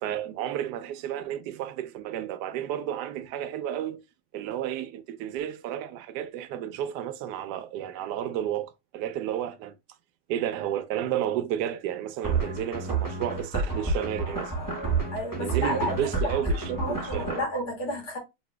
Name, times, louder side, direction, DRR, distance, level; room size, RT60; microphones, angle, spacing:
voice 1, 0.0-4.0 4.3-9.8 10.3-14.5 15.4-17.4, right 11 dB, 80° right, 0.9 m, -32 dB
sound 1, 12.2-17.4, right 3 dB, 15° left, 0.9 m, -29 dB
voice 2, 15.1-15.9 16.2-16.4 16.8-18.2, equal, 90° left, 2.6 m, -31 dB
6.8 x 2.7 x 2.2 m
omnidirectional pair, 2.3 m